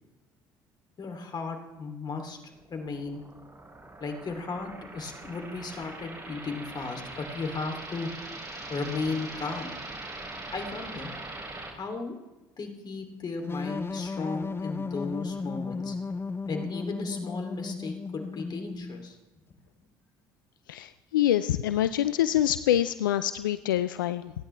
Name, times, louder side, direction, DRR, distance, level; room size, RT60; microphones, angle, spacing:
voice 1, 1.0-2.4 2.7-3.2 4.0-8.1 8.7-9.7 10.5-11.1 11.8-12.1 12.6-16.0 16.5-19.1, left 4 dB, 40° left, 4 dB, 3.0 m, -35 dB
sound 1, 2.5-11.7, right 2 dB, 25° right, 4.0 m, -42 dB
sound 2, 13.5-19.1, left 4 dB, 20° left, 0.6 m, -35 dB
voice 2, 20.7-24.3, left 11 dB, 85° left, 13 dB, 0.4 m, -26 dB
29.0 x 10.0 x 3.3 m, 1.1 s
hypercardioid pair, 55°, 11 cm